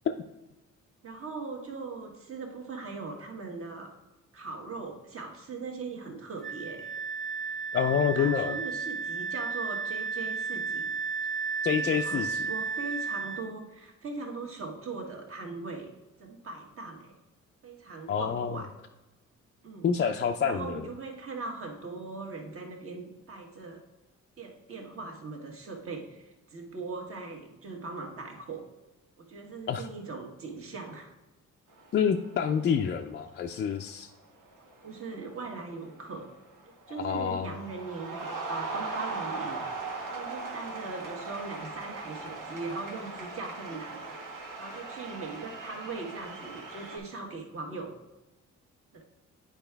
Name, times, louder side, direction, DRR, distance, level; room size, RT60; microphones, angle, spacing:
voice 1, 1.0-3.9 4.3-6.9 7.7-10.9 11.6-15.9 16.2-17.1 17.6-18.7 19.6-19.9 20.4-23.8 24.4-28.7 29.2-31.1 34.8-36.3 36.9-39.7 40.1-44.2 44.6-48.0 48.9-49.0, right 3 dB, 45° right, 2 dB, 1.4 m, -40 dB
Wind instrument woodwind instrument, 6.4-13.5, right 5 dB, ahead, 0.8 m, -33 dB
voice 2, 7.7-8.6 11.6-12.4 18.1-18.6 19.8-20.8 29.7-29.8 31.9-34.1 36.9-37.5, left 7 dB, 40° left, 3 dB, 0.4 m, -27 dB
sound 1, 31.7-32.2 32.5-33.0 33.9-34.1 34.5-36.7 37.1-47.0, right 3 dB, 85° right, 1.4 m, -39 dB
9.0 x 4.8 x 3.4 m, 1.1 s
cardioid pair, 90°, 30 cm